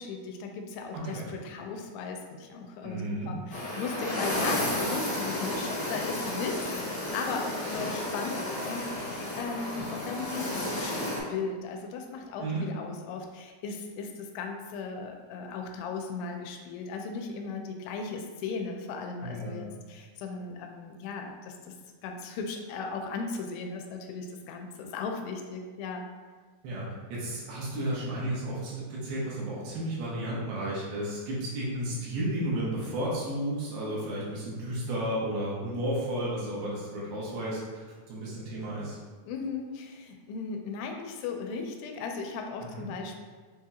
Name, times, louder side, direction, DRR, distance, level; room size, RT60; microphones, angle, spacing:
voice 1, 0.0-21.8 22.0-26.0 39.3-43.2, left 4 dB, 85° left, 3 dB, 2.6 m, -37 dB
voice 2, 0.9-1.3 2.8-3.3 12.4-12.7 19.2-19.6 26.6-39.0 42.6-42.9, right 1 dB, 75° right, -6 dB, 2.7 m, -33 dB
sound 1, 3.5-11.2, left 1 dB, 65° left, 1.0 m, -32 dB
7.0 x 2.8 x 2.3 m, 1.4 s
omnidirectional pair, 4.6 m